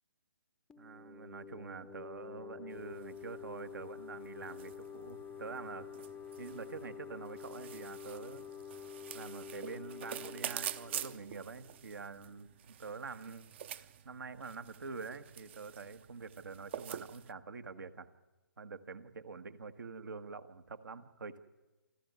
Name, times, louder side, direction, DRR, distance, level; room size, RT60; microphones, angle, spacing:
sound 1, 0.7-12.1, left 8 dB, 5° left, 0.7 m, -49 dB
voice 1, 0.8-5.9 6.4-8.5 9.1-18.1 18.6-21.4, right 4 dB, 65° right, 10 dB, 1.6 m, -46 dB
sound 2, 2.7-17.3, right 10 dB, 30° right, 0.7 m, -47 dB
28.5 x 12.0 x 9.5 m, 1.1 s
hypercardioid pair, 150°, 11 cm